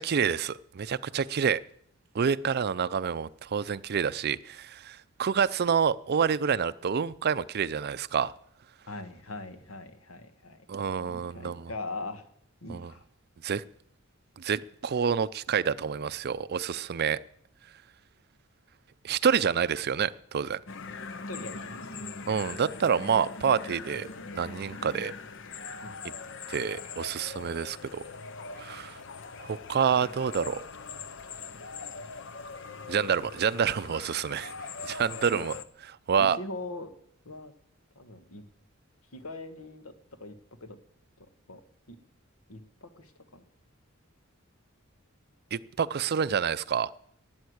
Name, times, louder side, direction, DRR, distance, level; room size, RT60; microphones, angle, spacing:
voice 1, 0.0-1.6 2.1-8.3 10.7-11.7 12.7-12.9 13.4-13.6 14.4-17.2 19.0-20.6 22.3-24.1 24.3-25.1 26.5-28.0 28.6-29.0 29.4-30.6 32.9-34.5 34.8-35.6 35.8-36.4 45.5-46.9, right 7 dB, 50° right, 16 dB, 0.5 m, -28 dB
voice 2, 8.9-12.2 12.6-13.0 21.3-21.8 25.8-26.1 30.0-30.1 35.2-35.5 36.2-36.9 37.2-37.5 37.9-38.4 39.1-39.9 40.2-40.3 40.6-40.8 41.2-41.6 41.9-42.0 42.5-43.4, left 2 dB, 85° left, 9 dB, 1.5 m, -41 dB
sound 1, 20.7-35.6, left 4 dB, 65° left, 0.8 m, -41 dB
13.0 x 9.6 x 8.0 m, 0.68 s
head